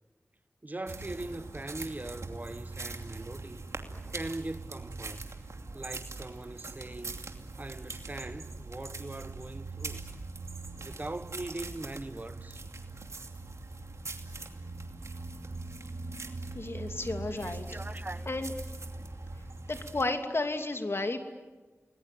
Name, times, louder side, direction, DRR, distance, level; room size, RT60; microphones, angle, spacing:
voice 1, 0.6-3.6 4.1-5.3 5.7-7.3 7.6-10.0 10.8-12.6 17.2-18.3, right 2 dB, 35° right, 1.2 m, -41 dB
sound 1, 0.9-20.0, right 3 dB, 75° right, 2.6 m, -41 dB
voice 2, 16.5-17.6 18.3-18.5 19.7-21.2, left 2 dB, 55° left, 2.8 m, -32 dB
29.5 x 20.5 x 9.3 m
wide cardioid pair, 55°, 5 cm